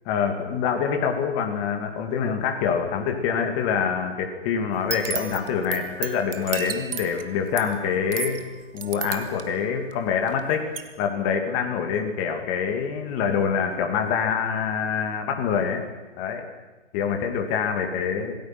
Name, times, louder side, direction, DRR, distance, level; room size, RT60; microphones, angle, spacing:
voice 1, 0.1-8.4 8.7-10.7 11.0-15.8 16.2-16.5 16.9-18.4, left 7 dB, 20° left, 4 dB, 2.4 m, -25 dB
sound 1, 4.7-10.4 10.7-10.8, right 7 dB, 50° right, 2.2 m, -34 dB
27.0 x 18.5 x 6.0 m, 1.2 s
hypercardioid pair, 150°, 36 cm